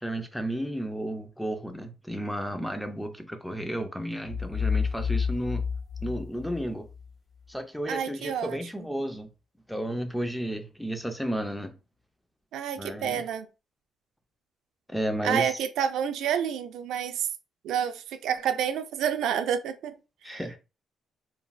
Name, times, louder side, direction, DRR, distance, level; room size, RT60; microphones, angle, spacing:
voice 1, 0.0-5.6 6.0-6.8 7.5-9.3 9.7-11.8 12.8-13.2 14.9-15.6 20.2-20.6, right 1 dB, ahead, 0.3 m, -32 dB
sound 1, 4.3-7.1, left 6 dB, 20° left, 0.8 m, -30 dB
voice 2, 7.9-8.6 12.5-13.5 15.2-17.3 17.6-19.9 20.3-20.6, right 8 dB, 75° right, 0.3 m, -29 dB
3.0 x 2.5 x 2.3 m
cardioid pair, 175°, 0 cm